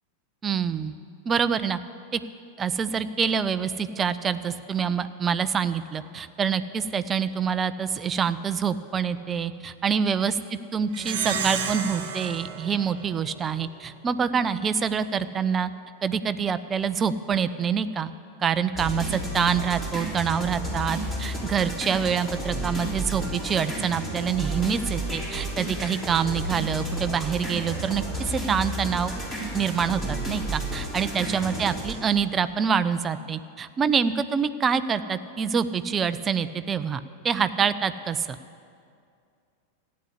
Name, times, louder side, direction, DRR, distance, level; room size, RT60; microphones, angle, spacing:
voice 1, 0.4-0.9 1.3-1.8 2.1-2.2 2.6-10.3 10.7-15.7 16.0-18.1 18.4-29.1 29.5-38.3, right 7 dB, 20° right, 13 dB, 0.6 m, -26 dB
Plucked string instrument, 10.9-13.7, right 6 dB, 55° right, 1.2 m, -32 dB
sound 1, 18.7-31.9, right 1 dB, 15° left, 3.6 m, -32 dB
14.5 x 9.7 x 8.2 m, 2.3 s
figure-of-eight pair, 90°, 0 cm